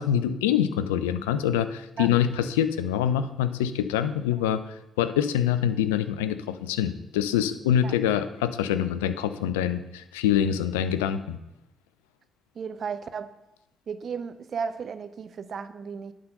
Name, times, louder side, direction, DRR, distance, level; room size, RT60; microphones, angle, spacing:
voice 1, 0.0-4.6 5.0-11.4, left 10 dB, 80° left, 12 dB, 0.4 m, -25 dB
voice 2, 12.6-13.3 13.9-16.1, right 6 dB, 50° right, 11 dB, 0.6 m, -34 dB
9.5 x 3.8 x 6.6 m, 0.90 s
figure-of-eight pair, 40°, 0 cm